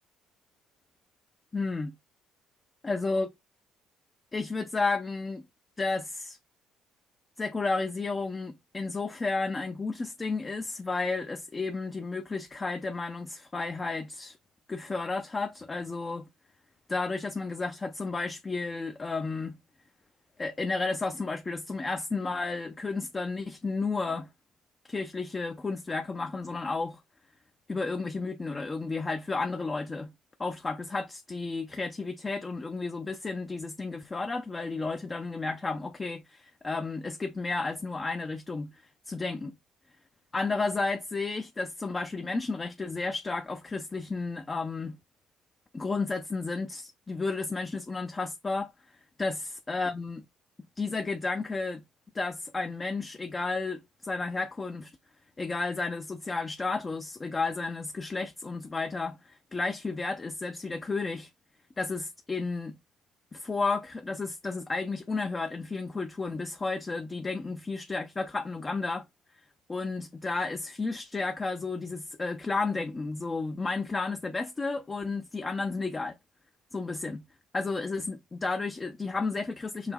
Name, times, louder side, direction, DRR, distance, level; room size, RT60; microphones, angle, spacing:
voice 1, 1.5-2.0 2.8-3.3 4.3-5.5 5.8-6.4 7.4-14.4 14.7-16.3 16.9-19.6 20.4-24.3 24.9-27.0 27.7-30.1 30.4-39.5 40.3-45.0 45.7-48.7 49.2-50.3 50.8-51.8 52.1-54.9 55.4-61.3 61.8-62.8 63.3-69.1 69.7-76.2 76.7-77.2 77.5-79.9, left 3 dB, 20° left, 0.4 m, -32 dB
4.9 x 2.6 x 3.6 m
cardioid pair, 145°, 0 cm